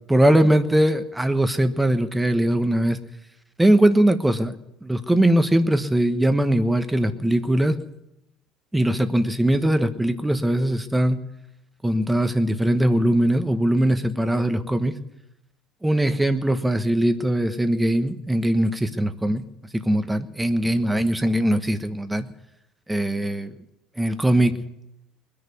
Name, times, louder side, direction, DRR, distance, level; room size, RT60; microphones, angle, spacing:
voice 1, 0.1-3.0 3.6-4.5 4.8-7.8 8.7-11.2 11.8-14.9 15.8-19.4 19.7-22.3 22.9-23.5 24.0-24.6, right 1 dB, 10° right, 9 dB, 1.3 m, -21 dB
20.5 x 7.0 x 9.4 m, 0.86 s
supercardioid pair, 95°, 0 cm